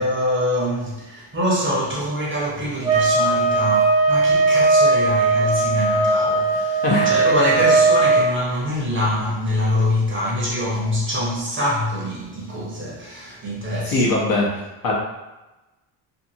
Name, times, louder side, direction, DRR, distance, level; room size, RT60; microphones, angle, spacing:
voice 1, 0.0-14.1, left 1 dB, 25° right, -5 dB, 0.8 m, -24 dB
sound 1, 2.8-8.3, right 3 dB, 55° right, 1.0 m, -18 dB
voice 2, 13.8-14.5 14.8-14.9, left 2 dB, 50° left, -4 dB, 0.9 m, -20 dB
2.7 x 2.5 x 2.7 m, 1.0 s
cardioid pair, 120°, 46 cm